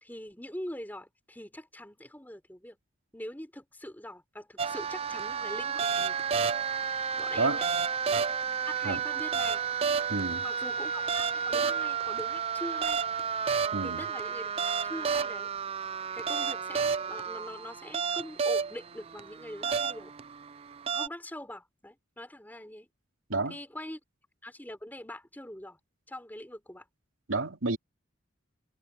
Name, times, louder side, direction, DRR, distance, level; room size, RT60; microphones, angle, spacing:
voice 1, 0.0-2.8 3.1-6.2 7.2-7.7 8.7-9.6 10.4-13.0 13.8-15.5 16.1-20.1 20.9-22.9 23.5-24.0 24.4-25.8 26.1-26.9, left 1 dB, 10° left, 3.7 m, -43 dB
sound 1, 4.6-21.1, right 6 dB, 30° right, 0.4 m, -31 dB
voice 2, 10.1-10.4 13.7-14.0 23.3-23.6 27.3-27.8, right 3 dB, 75° right, 2.8 m, -30 dB
head